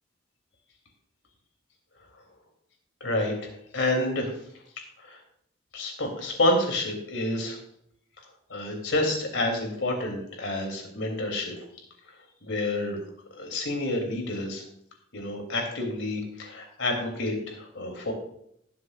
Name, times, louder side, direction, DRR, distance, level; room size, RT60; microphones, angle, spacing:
voice 1, 3.0-4.3 5.0-5.2 5.7-7.6 8.5-11.5 12.4-13.0 13.3-14.6 15.1-18.1, left 1 dB, 85° left, 2 dB, 3.2 m, -29 dB
19.0 x 7.7 x 2.5 m, 0.71 s
head